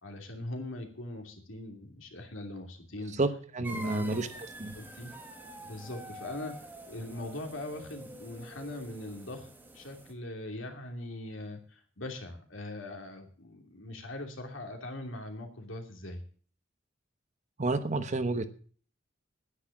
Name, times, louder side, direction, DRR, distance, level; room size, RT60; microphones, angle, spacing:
voice 1, 0.0-3.1 3.8-4.2 4.7-5.1 5.6-9.5 9.7-16.2, left 1 dB, 75° left, 4 dB, 2.8 m, -41 dB
voice 2, 3.1-4.3 4.6-4.7 17.6-18.5, right 2 dB, 35° right, 10 dB, 1.0 m, -30 dB
sound 1, 3.6-10.1, right 1 dB, 10° right, 1.5 m, -47 dB
10.0 x 10.0 x 7.3 m, 0.43 s
head